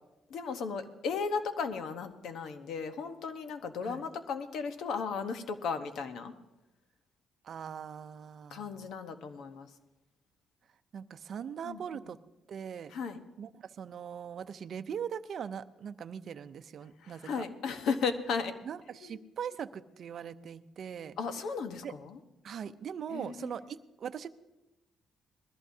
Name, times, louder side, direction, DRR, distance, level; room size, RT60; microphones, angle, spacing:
voice 1, 0.3-6.3 8.5-9.7 11.6-11.8 12.9-13.2 17.0-18.5 19.0-19.2 21.2-22.2 23.1-23.5, left 5 dB, 75° left, 9 dB, 1.1 m, -35 dB
voice 2, 7.4-8.9 10.9-12.2 12.5-12.9 13.4-17.4 18.6-21.2 21.8-21.9 22.4-24.3, right 8 dB, 60° right, 12 dB, 0.6 m, -41 dB
20.5 x 14.0 x 2.8 m, 0.98 s
cardioid pair, 90°, 0 cm